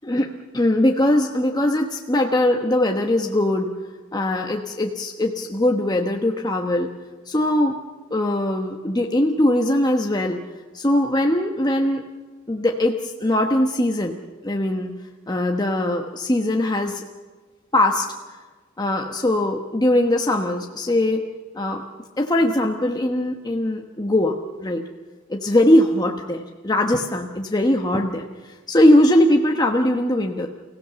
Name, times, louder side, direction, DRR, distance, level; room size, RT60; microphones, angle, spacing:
voice 1, 0.5-3.7 4.1-6.9 7.3-7.8 8.1-10.4 10.7-12.0 12.5-14.2 14.4-14.9 15.3-17.0 17.7-18.1 18.8-21.2 21.5-21.8 22.2-24.8 25.3-28.3 28.7-30.5, left 1 dB, 20° left, 2 dB, 1.0 m, -20 dB
29.5 x 16.5 x 6.9 m, 1.4 s
head